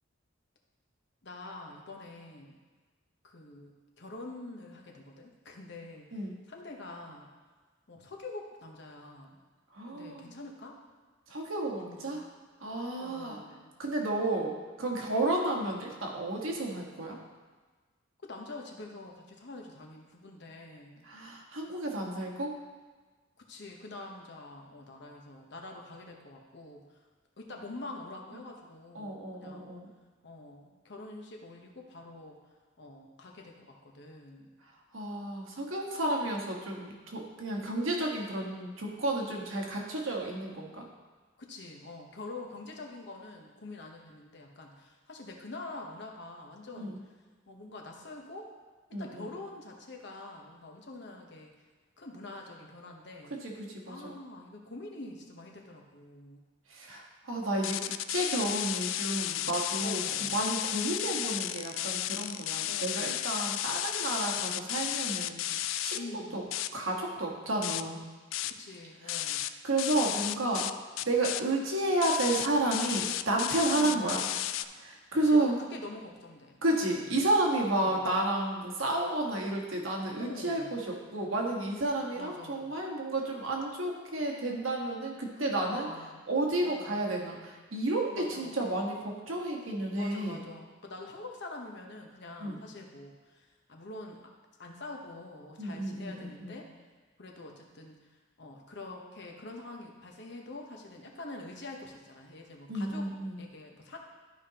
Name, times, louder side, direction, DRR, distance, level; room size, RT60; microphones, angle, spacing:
voice 1, 1.2-2.6 3.2-7.3 7.9-9.4 9.9-10.8 13.0-13.7 18.2-21.1 23.5-26.8 27.4-29.7 30.2-32.4 32.8-34.5 41.4-47.0 47.5-48.5 48.9-51.5 52.0-53.3 53.9-56.4 59.8-60.4 62.7-63.3 65.9-66.5 68.5-69.4 73.7-74.2 75.1-76.6 76.9-77.2 77.7-78.1 80.2-80.7 82.2-82.8 85.4-86.3 86.6-87.1 88.1-88.6 89.9-94.2 94.6-96.7 97.2-98.0 98.4-103.1 103.4-104.0, left 2 dB, 60° left, 1 dB, 1.0 m, -45 dB
voice 2, 9.7-10.3 11.3-12.2 12.6-13.4 13.8-17.2 21.0-22.6 28.9-29.9 34.9-40.9 46.8-47.0 48.9-49.3 53.3-54.2 56.7-66.1 66.3-66.4 66.7-68.0 69.0-69.2 69.6-70.7 71.0-74.3 74.8-75.6 76.6-85.9 86.3-90.4 92.4-92.6 95.6-96.6 102.7-103.4, right 2 dB, 85° right, -1 dB, 1.4 m, -31 dB
sound 1, 57.6-66.0 66.5-66.7 67.2-67.3 67.6-67.9 68.3-68.6 69.1-69.5 69.8-70.7 71.0-71.4 72.0-74.6, left 13 dB, 75° left, 0.3 m, -33 dB
12.0 x 5.2 x 2.9 m, 1.4 s
head